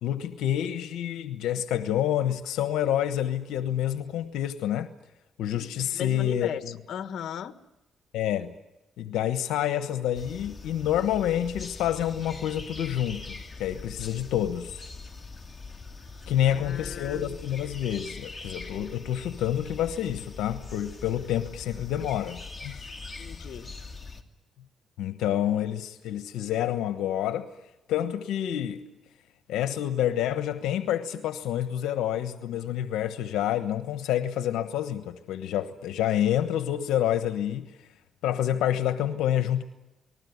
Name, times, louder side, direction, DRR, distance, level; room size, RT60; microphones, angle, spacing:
voice 1, 0.0-4.9 5.4-6.8 8.1-8.5 9.0-14.9 16.3-22.9 25.0-27.5 27.9-28.8 29.5-37.7 38.2-39.6, left 11 dB, 90° left, 1.2 m, -28 dB
voice 2, 5.4-6.6 6.9-7.5 16.5-17.4 23.2-23.7, left 9 dB, 65° left, 1.5 m, -37 dB
sound 1, 10.1-24.2, left 3 dB, 20° left, 2.8 m, -42 dB
28.5 x 20.0 x 9.5 m
cardioid pair, 90°, 0 cm